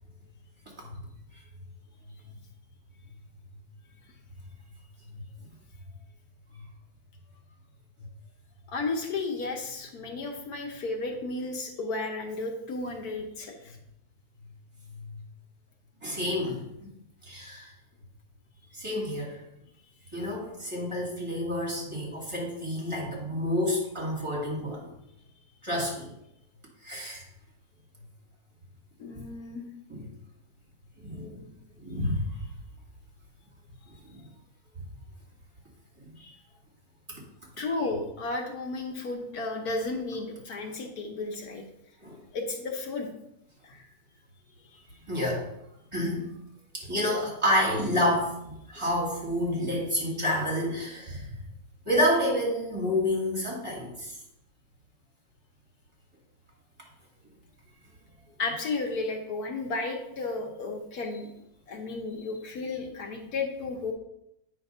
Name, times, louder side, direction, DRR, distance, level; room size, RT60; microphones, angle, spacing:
voice 1, 8.7-13.8 29.0-29.7 36.2-36.4 37.6-41.6 42.3-43.1 43.6-43.9 58.4-63.9, left 3 dB, 80° left, 2 dB, 1.5 m, -33 dB
voice 2, 16.0-16.9 17.2-17.7 18.7-19.4 20.1-24.9 25.6-26.1 26.8-27.2 29.9-30.1 31.0-31.4 31.8-32.3 34.1-34.2 42.0-42.2 45.1-45.4 45.9-46.3 46.7-51.3 51.8-54.2, left 1 dB, 20° right, -4 dB, 2.4 m, -29 dB
8.9 x 3.4 x 5.4 m, 0.81 s
omnidirectional pair, 1.6 m